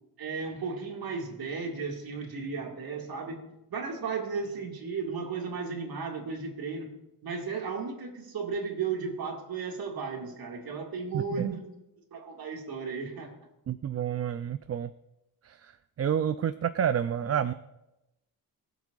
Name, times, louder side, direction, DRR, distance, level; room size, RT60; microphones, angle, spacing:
voice 1, 0.2-6.9 7.2-11.6 12.1-13.3, right 5 dB, 70° right, 1 dB, 2.2 m, -35 dB
voice 2, 11.1-11.5 13.7-14.9 15.4-15.7 16.0-17.5, right 9 dB, 40° right, 12 dB, 0.4 m, -29 dB
24.0 x 8.2 x 2.5 m, 0.93 s
cardioid pair, 105°, 38 cm